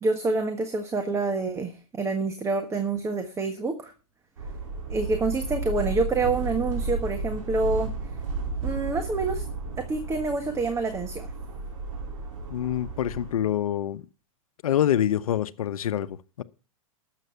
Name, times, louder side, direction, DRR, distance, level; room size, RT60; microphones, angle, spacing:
voice 1, 0.0-3.9 4.9-7.9 8.6-9.4 9.8-11.3, right 3 dB, 15° right, 1.5 m, -27 dB
sound 1, 4.4-13.3, right 3 dB, 75° right, 5.2 m, -33 dB
voice 2, 12.5-14.0 14.6-16.4, left 11 dB, 80° left, 0.9 m, -26 dB
12.5 x 7.6 x 5.8 m
hypercardioid pair, 125°, 18 cm